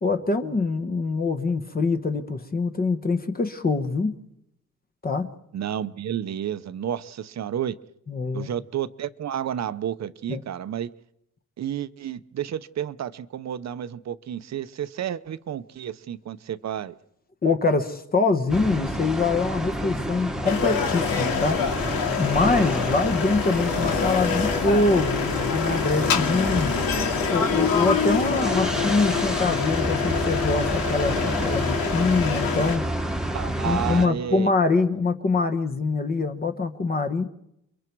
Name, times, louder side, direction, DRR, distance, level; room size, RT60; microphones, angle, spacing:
voice 1, 0.0-4.1 5.0-5.3 8.1-8.5 10.3-10.4 17.4-26.8 27.3-32.8 33.6-37.3, left 3 dB, 25° left, 7 dB, 1.2 m, -24 dB
voice 2, 5.5-7.8 8.3-10.9 11.6-17.0 33.3-34.5, right 10 dB, 50° right, 14 dB, 0.8 m, -31 dB
sound 1, 18.5-34.1, right 1 dB, ahead, 1.4 m, -29 dB
sound 2, 20.4-32.8, left 7 dB, 85° left, 2.5 m, -26 dB
29.0 x 23.0 x 4.7 m, 0.78 s
cardioid pair, 155°, 34 cm